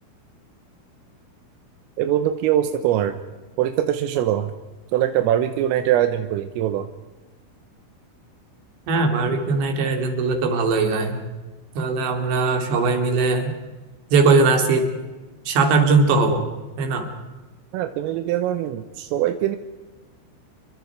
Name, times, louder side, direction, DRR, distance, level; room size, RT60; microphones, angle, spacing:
voice 1, 2.0-3.2 3.6-4.5 4.9-6.9 17.7-19.6, right 11 dB, 85° right, 8 dB, 3.6 m, -22 dB
voice 2, 8.9-11.2 11.8-13.5 14.1-14.9 15.5-16.4 16.8-17.1, right 3 dB, 65° right, 5 dB, 4.9 m, -20 dB
29.5 x 24.0 x 4.8 m, 1.2 s
omnidirectional pair, 5.9 m